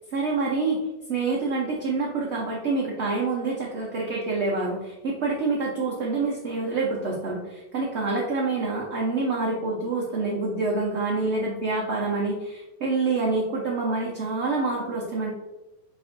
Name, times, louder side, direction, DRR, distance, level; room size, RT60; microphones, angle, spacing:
voice 1, 0.1-0.8 1.1-15.3, right 3 dB, 75° right, -3 dB, 0.6 m, -27 dB
5.0 x 3.4 x 2.4 m, 1.0 s
omnidirectional pair, 2.0 m